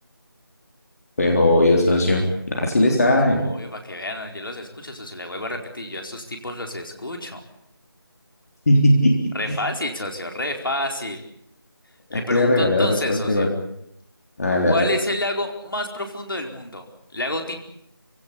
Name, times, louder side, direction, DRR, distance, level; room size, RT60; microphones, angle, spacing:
voice 1, 1.2-3.4 8.7-9.2 9.5-9.6 12.1-13.5 14.4-14.8, left 1 dB, 40° left, 1 dB, 3.7 m, -18 dB
voice 2, 3.4-7.4 9.3-11.2 12.1-13.5 14.6-16.9 17.1-17.6, left 1 dB, 60° left, 4 dB, 4.6 m, -29 dB
27.5 x 17.0 x 8.5 m, 0.74 s
figure-of-eight pair, 170°, 13 cm